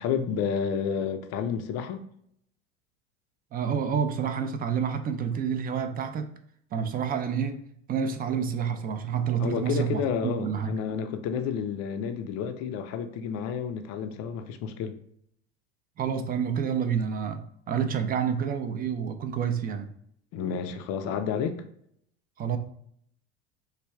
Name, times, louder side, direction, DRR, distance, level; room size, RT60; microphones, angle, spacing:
voice 1, 0.0-2.0 9.4-14.9 20.3-21.6, left 7 dB, 50° left, 0.5 m, -30 dB
voice 2, 3.5-6.3 6.7-7.6 7.9-10.7 16.0-19.9 22.4-22.6, right 7 dB, 25° right, 0.4 m, -28 dB
3.2 x 2.3 x 3.4 m
hypercardioid pair, 80°, 34 cm